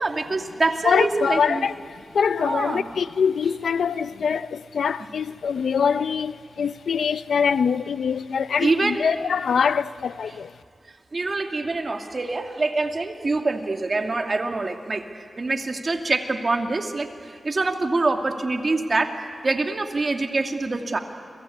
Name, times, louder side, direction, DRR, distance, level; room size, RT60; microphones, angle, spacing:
voice 1, 0.0-1.7 2.4-2.8 8.6-9.0 11.1-15.1 15.4-21.0, right 3 dB, 45° right, 2.4 m, -25 dB
voice 2, 0.8-10.5, left 6 dB, 85° left, 0.6 m, -24 dB
29.5 x 23.0 x 8.5 m
cardioid pair, 55°, 0 cm